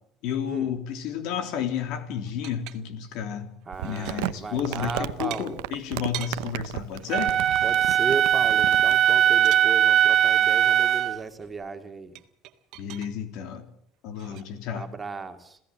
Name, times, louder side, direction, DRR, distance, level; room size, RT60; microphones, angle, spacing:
voice 1, 0.2-3.5 3.8-7.4 12.8-13.7 14.0-14.9, left 8 dB, 70° left, 7 dB, 3.5 m, -31 dB
sound 1, 2.3-3.2 3.6-4.3 5.3-6.4 8.6-9.7 12.1-13.1 14.1-14.4, right 15 dB, 65° right, 1.8 m, -41 dB
voice 2, 3.7-5.6 7.6-12.2 14.3-14.5 14.7-15.6, right 4 dB, 20° right, 6 dB, 2.5 m, -35 dB
Crumpling crinkling, 3.7-9.0, right 18 dB, 90° right, 0.8 m, -34 dB
Wind instrument woodwind instrument, 7.1-11.2, right 11 dB, 40° right, 0.8 m, -20 dB
27.0 x 16.5 x 7.8 m, 0.72 s
cardioid pair, 125°, 0 cm